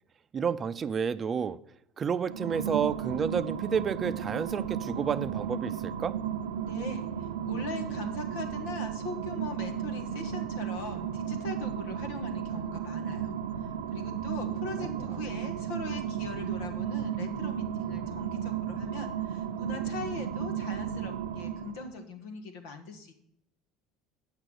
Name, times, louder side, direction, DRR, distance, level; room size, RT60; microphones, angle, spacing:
voice 1, 0.3-1.6 2.0-6.2 14.8-15.1, right 7 dB, 35° right, 0.5 m, -30 dB
sound 1, 2.2-21.9, right 8 dB, 90° right, 0.6 m, -34 dB
voice 2, 6.6-23.1, left 3 dB, 75° left, 1.6 m, -41 dB
8.9 x 6.0 x 6.4 m
hypercardioid pair, 80°, 0 cm